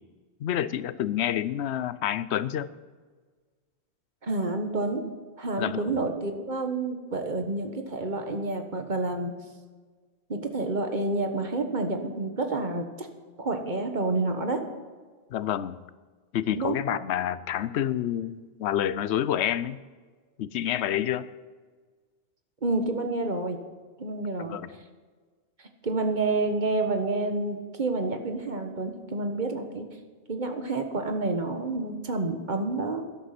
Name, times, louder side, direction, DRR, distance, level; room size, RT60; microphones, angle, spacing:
voice 1, 0.4-2.7 5.6-6.0 15.3-15.8 16.3-19.8 20.4-21.3 24.4-24.7, left 11 dB, 90° left, 16 dB, 0.9 m, -28 dB
voice 2, 4.2-5.0 5.4-9.3 10.3-13.1 13.4-14.6 16.6-16.8 22.6-23.6 24.0-24.6 25.8-29.9 30.3-33.0, right 2 dB, 45° right, 5 dB, 1.5 m, -29 dB
13.0 x 11.0 x 5.9 m, 1.5 s
omnidirectional pair, 1.1 m